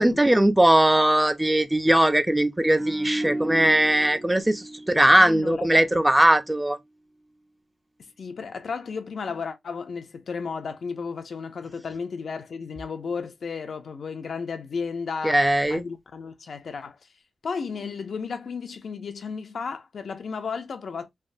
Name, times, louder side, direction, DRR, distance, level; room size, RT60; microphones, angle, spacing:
voice 1, 0.0-6.8 15.2-15.8, right 1 dB, 15° right, 0.4 m, -20 dB
sound 1, 2.7-6.0 6.3-6.5, right 1 dB, 75° right, 1.2 m, -33 dB
voice 2, 5.2-5.9 8.2-15.4 15.7-17.0 17.4-21.1, left 5 dB, 75° left, 0.5 m, -33 dB
3.3 x 2.0 x 2.5 m
wide cardioid pair, 85°, 0 cm